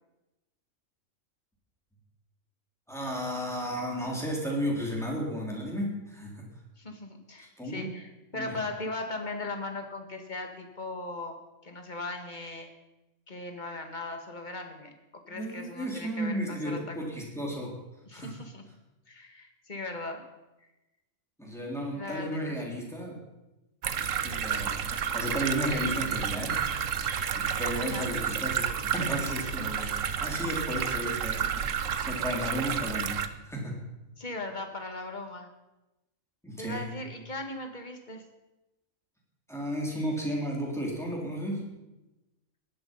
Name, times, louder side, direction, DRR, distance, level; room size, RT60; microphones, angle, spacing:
voice 1, 2.9-6.5 7.6-7.9 8.3-8.6 15.3-17.7 18.1-18.3 21.4-23.2 24.2-24.9 25.1-26.6 27.4-31.7 32.0-33.8 36.4-36.9 39.5-41.6, equal, ahead, -2 dB, 4.1 m, -33 dB
voice 2, 6.8-12.7 13.3-14.9 15.3-17.0 18.1-18.6 19.1-20.2 21.9-22.7 27.8-28.1 34.2-35.5 36.6-38.2, left 2 dB, 35° left, 5 dB, 2.0 m, -38 dB
sound 1, 23.8-33.3, right 8 dB, 70° right, 1.2 m, -31 dB
17.5 x 11.5 x 5.6 m, 1.0 s
omnidirectional pair, 1.4 m